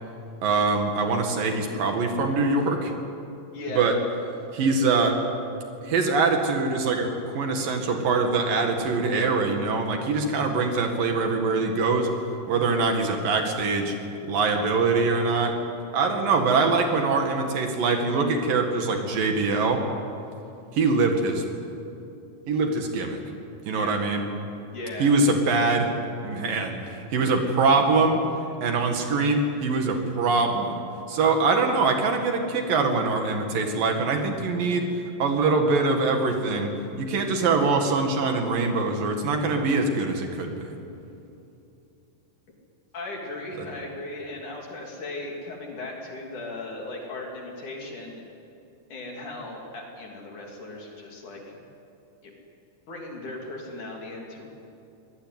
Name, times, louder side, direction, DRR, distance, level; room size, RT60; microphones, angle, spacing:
voice 1, 0.4-2.9 3.7-4.0 4.5-5.2 5.8-12.1 12.5-13.9 14.3-15.5 15.9-19.8 20.7-21.4 22.5-23.2 23.6-24.2 25.0-25.9 26.2-28.2 28.6-30.8 31.1-34.9 35.2-40.7 43.6-43.7, right 3 dB, 75° right, 4 dB, 3.6 m, -23 dB
voice 2, 3.5-4.0 23.7-24.0 24.7-25.2 42.9-48.2 48.9-51.6 52.2-52.3 52.9-54.5, left 2 dB, 60° left, -1 dB, 4.6 m, -37 dB
24.5 x 18.5 x 9.5 m, 2.7 s
omnidirectional pair, 4.1 m